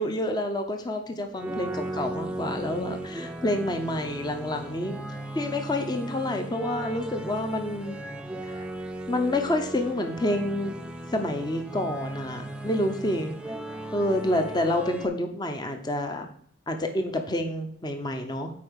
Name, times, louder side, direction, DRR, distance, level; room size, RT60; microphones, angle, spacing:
voice 1, 0.0-5.0 5.3-8.0 8.4-8.6 9.1-10.7 11.1-13.3 13.9-16.3 16.7-18.5, left 1 dB, 25° left, 5 dB, 0.8 m, -28 dB
sound 1, 1.3-15.0, right 1 dB, 5° right, 0.6 m, -37 dB
8.6 x 4.8 x 6.2 m, 0.62 s
head